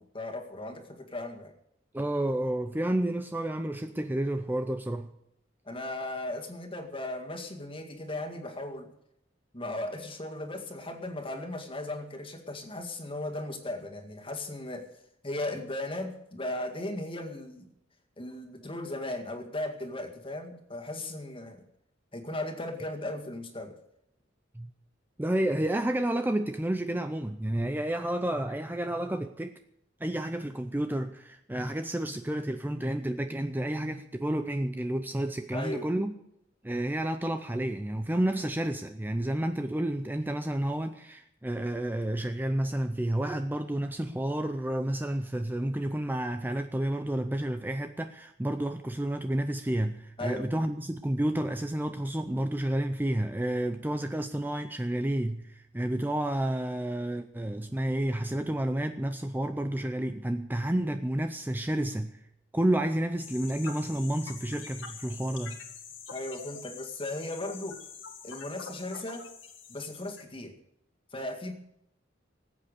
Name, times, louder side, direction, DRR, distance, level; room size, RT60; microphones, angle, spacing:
voice 1, 0.0-1.5 5.7-8.9 9.5-14.9 15.2-17.7 18.2-21.6 22.1-23.8 35.5-35.9 50.2-50.6 66.1-67.8 68.2-69.3 69.7-70.6 71.1-71.5, left 1 dB, 30° left, 2.0 m, -37 dB
voice 2, 1.9-5.1 24.5-24.7 25.2-29.6 30.0-36.1 36.6-62.2 62.5-65.6, right 1 dB, 10° right, 0.5 m, -30 dB
sound 1, 63.2-70.2, left 6 dB, 70° left, 2.1 m, -45 dB
19.0 x 8.4 x 6.6 m
head